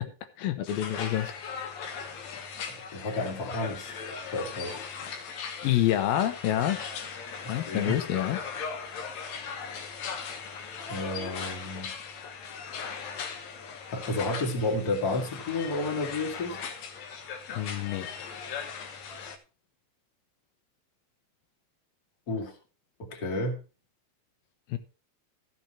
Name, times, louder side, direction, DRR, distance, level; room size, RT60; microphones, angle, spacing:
voice 1, 0.4-1.3 5.6-6.8 7.5-8.4 17.5-18.2 24.7-24.8, left 12 dB, 85° left, 2.7 m, -27 dB
sound 1, 0.7-19.4, left 6 dB, 65° left, 2.1 m, -39 dB
voice 2, 2.3-3.9 4.3-4.8 7.4-8.0 10.9-11.9 13.9-16.6 22.3-22.5 23.0-23.6, left 2 dB, 30° left, 2.2 m, -31 dB
14.0 x 7.1 x 4.3 m
omnidirectional pair, 4.2 m